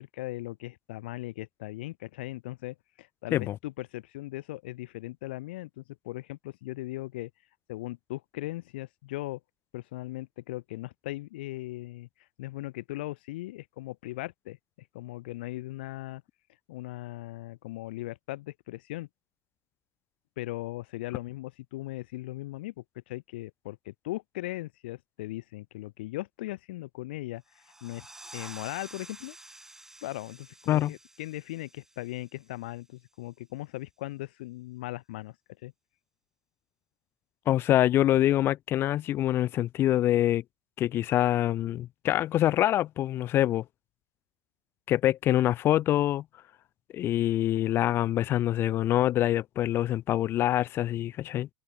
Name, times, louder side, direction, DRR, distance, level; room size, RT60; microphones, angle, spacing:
voice 1, 0.0-7.3 7.7-9.4 9.7-16.2 16.7-19.1 20.4-28.1 28.3-29.4 30.0-35.7, left 18 dB, 75° left, 2.8 m, -39 dB
sound 1, 27.5-32.8, right 2 dB, 10° right, 3.8 m, -50 dB
voice 2, 37.5-40.4 40.8-43.6 44.9-46.2 46.9-51.5, left 13 dB, 45° left, 0.7 m, -25 dB
hypercardioid pair, 100°, 6 cm